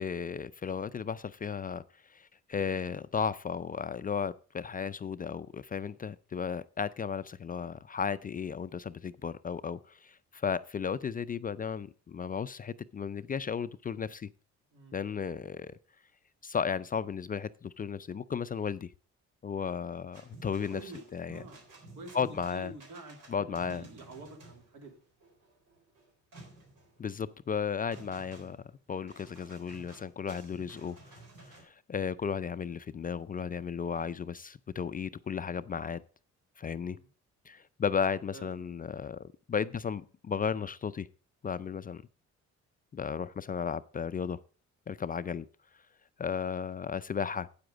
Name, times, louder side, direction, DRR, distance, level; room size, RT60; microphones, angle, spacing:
voice 1, 0.0-1.8 2.1-14.3 14.9-15.8 16.4-18.9 19.4-20.8 21.1-21.4 22.1-22.7 23.3-23.8 27.0-28.6 28.9-36.0 36.6-37.0 37.5-41.1 41.4-42.0 42.9-44.4 44.9-45.5 46.2-47.5, left 6 dB, 30° left, 14 dB, 0.4 m, -34 dB
sound 1, 20.1-31.6, right 2 dB, 90° right, 3.9 m, -53 dB
voice 2, 20.7-21.7 21.9-25.0 36.7-37.1 38.3-38.7, right 2 dB, 70° right, 3 dB, 2.9 m, -48 dB
8.8 x 7.8 x 5.1 m, 0.38 s
cardioid pair, 90°, 30 cm